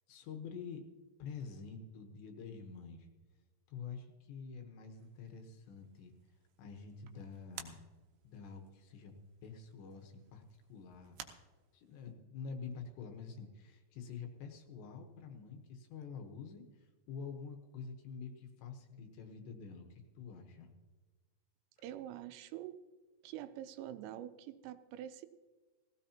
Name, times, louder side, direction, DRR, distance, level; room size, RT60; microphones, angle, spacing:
voice 1, 0.1-0.8 1.2-3.1 3.7-6.1 6.6-7.8 8.2-9.1 9.4-10.4 10.7-11.2 11.7-20.7, left 5 dB, 70° left, 4 dB, 3.0 m, -47 dB
sound 1, 4.9-12.1, right 9 dB, 75° right, 2.7 m, -56 dB
voice 2, 21.8-22.8 23.2-25.3, right 12 dB, 90° right, 12 dB, 3.3 m, -46 dB
17.5 x 16.0 x 2.8 m, 1.3 s
omnidirectional pair, 5.7 m